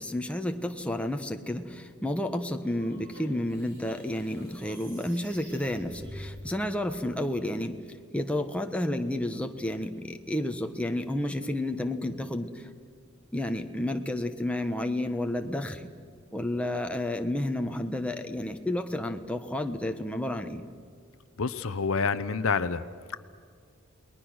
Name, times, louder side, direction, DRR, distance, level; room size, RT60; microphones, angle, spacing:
voice 1, 0.0-7.8 8.1-12.7 13.3-15.9 16.3-20.6, left 1 dB, 5° left, 5 dB, 1.1 m, -31 dB
sound 1, 2.6-6.4, equal, 50° right, 6.8 m, -47 dB
voice 2, 21.4-22.8, left 5 dB, 65° left, 13 dB, 0.7 m, -27 dB
30.0 x 20.5 x 6.3 m, 2.1 s
head